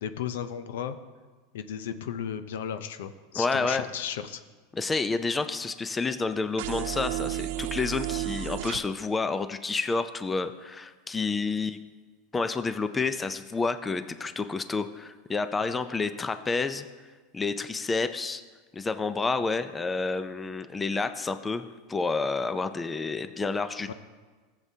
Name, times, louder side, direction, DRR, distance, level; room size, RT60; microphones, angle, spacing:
voice 1, 0.0-1.0 1.5-4.4 15.6-15.8 23.9-24.0, left 8 dB, 80° left, 11 dB, 0.6 m, -35 dB
voice 2, 3.3-3.9 4.7-11.8 12.3-16.9 17.3-18.4 18.7-23.9, left 4 dB, 15° left, 11 dB, 0.5 m, -29 dB
sound 1, 6.6-8.8, right 14 dB, 70° right, 0.4 m, -32 dB
15.0 x 7.5 x 2.8 m, 1.4 s
supercardioid pair, 120°, 0 cm